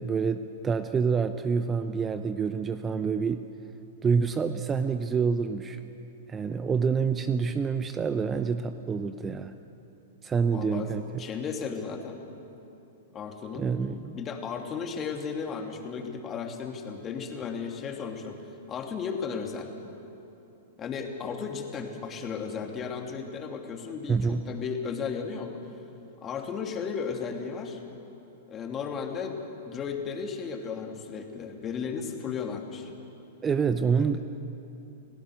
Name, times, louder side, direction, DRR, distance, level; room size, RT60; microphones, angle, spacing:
voice 1, 0.0-3.4 4.0-5.8 6.3-9.5 10.2-11.2 13.5-14.1 24.1-24.5 33.4-34.2, right 5 dB, 20° right, 10 dB, 0.8 m, -27 dB
voice 2, 10.5-10.9 11.2-12.2 13.1-13.7 14.1-18.4 18.7-19.7 20.8-25.6 26.2-27.8 28.5-32.9 34.0-34.1, left 6 dB, 25° left, 3 dB, 2.7 m, -35 dB
30.0 x 17.0 x 6.6 m, 3.0 s
figure-of-eight pair, 105°, 0 cm